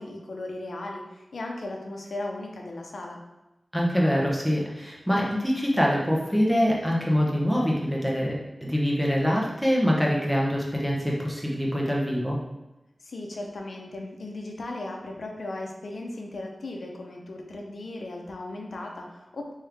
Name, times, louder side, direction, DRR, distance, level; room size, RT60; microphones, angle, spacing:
voice 1, 0.0-3.2 13.0-19.5, left 2 dB, 85° left, 1 dB, 0.6 m, -37 dB
voice 2, 3.7-12.4, equal, ahead, -4 dB, 0.9 m, -24 dB
3.6 x 3.1 x 3.4 m, 0.99 s
wide cardioid pair, 80°, 0 cm